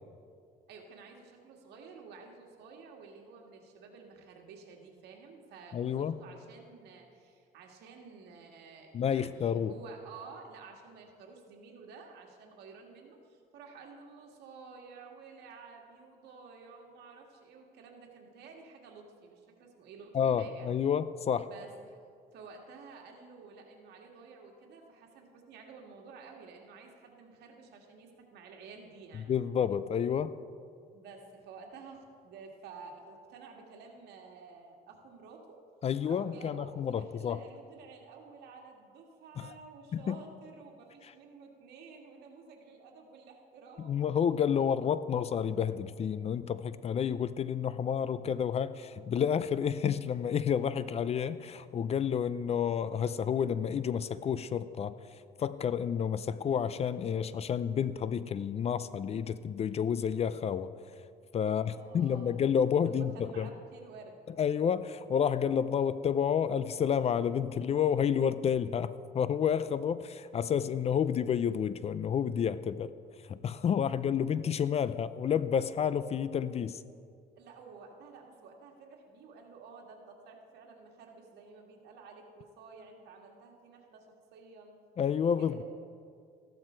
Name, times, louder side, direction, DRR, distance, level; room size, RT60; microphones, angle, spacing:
voice 1, 0.7-20.7 21.4-22.0 22.3-29.3 30.9-35.6 36.0-44.0 61.5-62.4 62.8-64.3 77.4-84.8 85.4-85.6, right 4 dB, 75° right, 1 dB, 2.0 m, -52 dB
voice 2, 5.7-6.2 8.9-9.7 20.1-21.5 29.1-30.3 35.8-37.4 39.4-39.5 39.9-40.2 43.8-54.9 55.4-60.7 61.3-63.5 64.4-72.9 73.3-76.8 85.0-85.6, left 8 dB, 40° left, 15 dB, 0.4 m, -30 dB
14.5 x 12.0 x 4.5 m, 2.3 s
cardioid pair, 110°, 17 cm